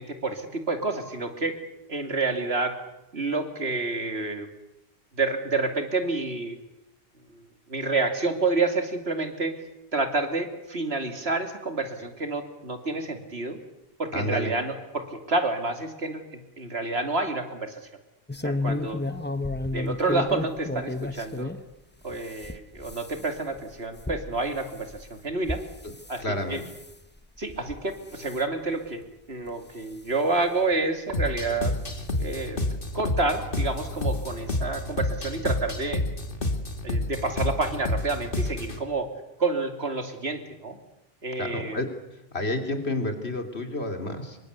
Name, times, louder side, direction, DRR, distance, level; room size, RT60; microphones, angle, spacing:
voice 1, 0.0-1.5 1.9-2.7 3.1-4.5 5.1-6.6 7.3-9.5 9.9-13.6 14.0-17.8 18.4-19.0 19.7-21.5 22.0-25.6 26.1-26.2 26.5-26.6 27.4-29.0 29.3-31.7 32.2-32.6 32.9-36.0 36.8-39.1 39.4-40.8 41.2-41.8, right 3 dB, 80° right, 6 dB, 3.0 m, -29 dB
voice 2, 14.1-14.5 25.8-25.9 26.2-26.6 41.4-41.9 42.3-44.4, left 1 dB, 85° left, 5 dB, 3.4 m, -30 dB
sound 1, 18.3-21.6 22.1-26.2 26.6-27.0 27.5-27.8 28.1-28.4 29.0-29.1 29.5-29.6 30.7-30.8 31.6-32.4 33.5-33.7 34.1-34.2 34.5-34.6, left 2 dB, 10° left, 0.9 m, -33 dB
sound 2, 31.1-38.8, left 2 dB, 55° left, 2.6 m, -29 dB
26.0 x 23.5 x 8.2 m, 0.92 s
omnidirectional pair, 1.1 m